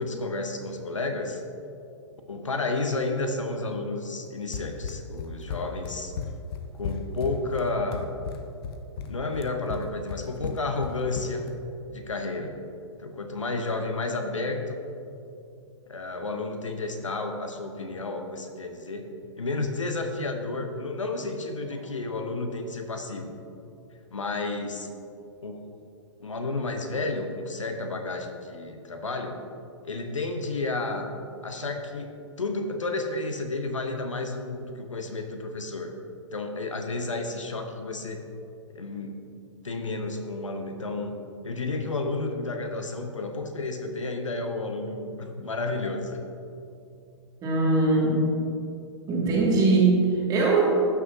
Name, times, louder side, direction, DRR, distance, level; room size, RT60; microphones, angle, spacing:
voice 1, 0.0-1.4 2.3-6.1 6.7-8.1 9.1-11.5 11.9-12.6 13.0-14.8 15.9-19.1 19.4-23.4 24.1-24.9 25.4-25.6 26.2-29.4 29.8-31.1 31.4-35.9 36.3-38.2 38.7-39.2 39.6-41.2 41.4-46.2, left 3 dB, 85° left, 5 dB, 0.9 m, -31 dB
Run, 4.5-11.6, left 6 dB, 50° left, 0.7 m, -35 dB
voice 2, 47.4-48.3 49.1-50.6, right 3 dB, 25° right, -4 dB, 2.1 m, -21 dB
15.0 x 6.2 x 2.7 m, 2.6 s
figure-of-eight pair, 115°, 16 cm